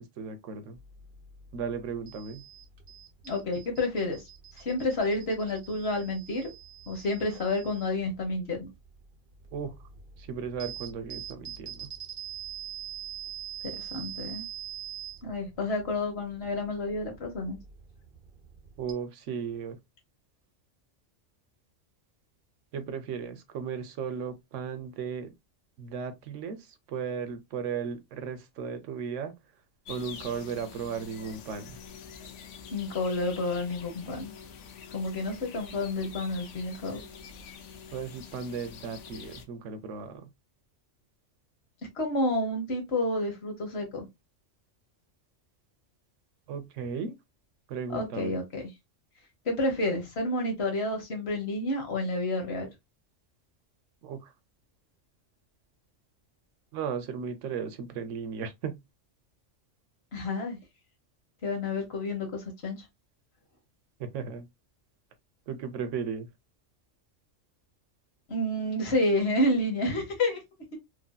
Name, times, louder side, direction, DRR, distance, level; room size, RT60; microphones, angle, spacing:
voice 1, 0.2-0.8 1.5-2.4 9.5-9.7 10.2-11.9 18.8-19.8 22.7-25.3 25.8-29.3 29.9-31.8 37.9-40.3 46.5-47.2 47.7-48.4 54.0-54.3 56.7-58.8 64.0-64.5 65.5-66.3, right 6 dB, 75° right, 1.0 m, -35 dB
sound 1, 0.7-18.9, right 9 dB, 50° right, 0.8 m, -45 dB
voice 2, 3.2-4.2 4.6-6.5 6.9-8.7 13.6-14.5 15.2-17.6 32.7-34.3 34.9-37.0 42.0-44.1 47.9-48.7 49.4-52.7 60.1-60.6 61.4-62.8 68.3-70.4 70.7-70.8, left 2 dB, 60° left, 1.2 m, -30 dB
sound 2, 29.8-39.4, left 6 dB, 75° left, 0.9 m, -46 dB
3.1 x 2.6 x 2.2 m
omnidirectional pair, 1.3 m